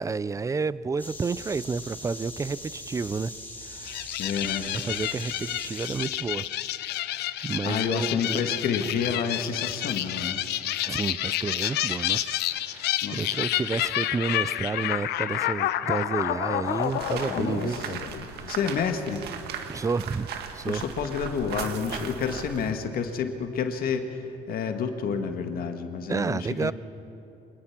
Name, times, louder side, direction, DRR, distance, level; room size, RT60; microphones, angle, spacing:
voice 1, 0.0-3.3 3.7-4.0 4.7-6.5 7.4-8.5 10.9-18.0 18.3-18.6 19.7-20.3 20.5-20.8 26.1-26.7, right 4 dB, 20° right, 0.4 m, -30 dB
sound 1, 1.0-6.1, left 1 dB, 10° left, 3.6 m, -41 dB
sound 2, 3.8-18.5, left 13 dB, 80° left, 0.8 m, -29 dB
voice 2, 4.2-4.7 7.6-10.4 13.0-13.2 17.3-17.9 18.5-19.2 20.7-24.2 24.5-26.7, left 6 dB, 60° left, 1.8 m, -29 dB
sound 3, 16.6-22.7, right 7 dB, 75° right, 1.9 m, -38 dB
24.5 x 20.5 x 6.0 m
cardioid pair, 110°, 17 cm